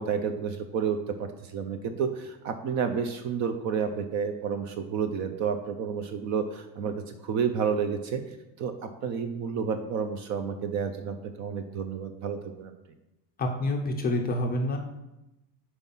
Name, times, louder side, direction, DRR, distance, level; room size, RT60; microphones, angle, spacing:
voice 1, 0.0-8.2 8.6-12.7, right 6 dB, 40° right, 8 dB, 0.4 m, -30 dB
voice 2, 13.4-14.8, left 1 dB, 20° left, 2 dB, 0.4 m, -27 dB
5.6 x 4.6 x 5.4 m, 0.95 s
cardioid pair, 150°, 48 cm